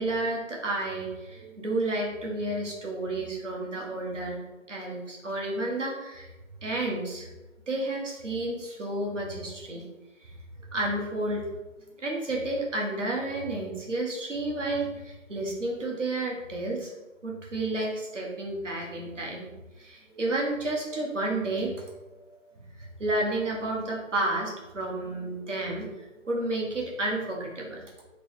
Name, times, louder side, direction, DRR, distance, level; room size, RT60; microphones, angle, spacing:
voice 1, 0.0-6.3 6.6-7.3 7.7-9.8 10.2-10.3 10.7-11.5 12.0-16.9 17.2-19.5 19.8-21.7 22.2-22.4 22.8-28.0, right 2 dB, 65° right, -1 dB, 1.2 m, -31 dB
3.2 x 3.1 x 3.2 m, 1.1 s
figure-of-eight pair, 170°, 40 cm